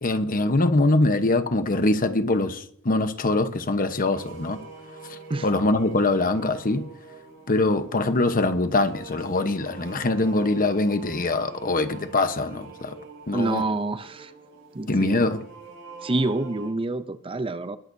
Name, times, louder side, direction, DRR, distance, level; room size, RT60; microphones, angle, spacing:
voice 1, 0.0-4.6 5.4-6.9 7.5-12.9 13.3-13.6 14.9-15.4, left 2 dB, 40° left, 1.1 m, -23 dB
sound 1, 4.1-16.7, right 4 dB, 65° right, 6.6 m, -44 dB
voice 2, 13.3-14.3 14.7-15.2 16.0-17.8, right 2 dB, 25° right, 0.6 m, -27 dB
20.5 x 11.0 x 2.8 m
head